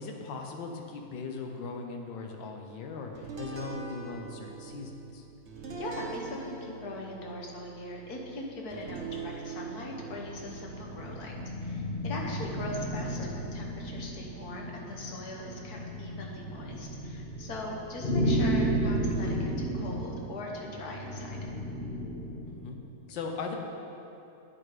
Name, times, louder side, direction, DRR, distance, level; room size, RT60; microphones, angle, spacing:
voice 1, 0.0-5.2 13.2-13.3 22.4-22.8 23.1-23.6, left 4 dB, 85° left, 3 dB, 1.7 m, -39 dB
sound 1, 3.2-13.8, right 5 dB, 45° right, 1.2 m, -44 dB
voice 2, 5.8-21.4, left 2 dB, 60° left, 0 dB, 1.6 m, -40 dB
sound 2, 10.0-22.6, right 1 dB, 35° left, 1.4 m, -33 dB
9.0 x 7.5 x 5.0 m, 2.8 s
omnidirectional pair, 2.0 m